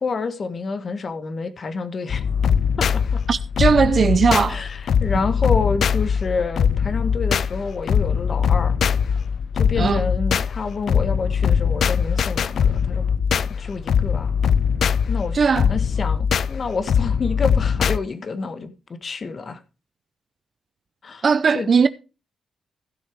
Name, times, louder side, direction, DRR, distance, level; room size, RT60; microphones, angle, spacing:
voice 1, 0.0-2.2 2.8-3.2 4.5-8.7 9.5-13.0 13.3-14.3 15.1-18.7 19.0-19.6 21.0-21.2 21.5-21.7, left 4 dB, 50° left, 1.5 m, -28 dB
sound 1, 2.1-18.0, left 7 dB, 70° left, 0.5 m, -21 dB
voice 2, 3.3-4.6 9.8-10.1 15.3-15.7 21.2-21.9, right 5 dB, 50° right, 0.7 m, -18 dB
15.5 x 6.6 x 4.7 m
cardioid pair, 85°, 0 cm